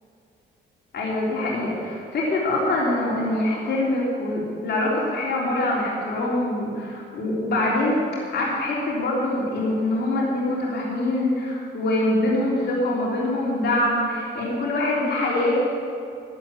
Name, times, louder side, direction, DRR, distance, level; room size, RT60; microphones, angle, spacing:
voice 1, 0.9-15.7, left 1 dB, 60° left, -5 dB, 3.7 m, -24 dB
12.0 x 11.5 x 8.7 m, 2.5 s
cardioid pair, 90°, 20 cm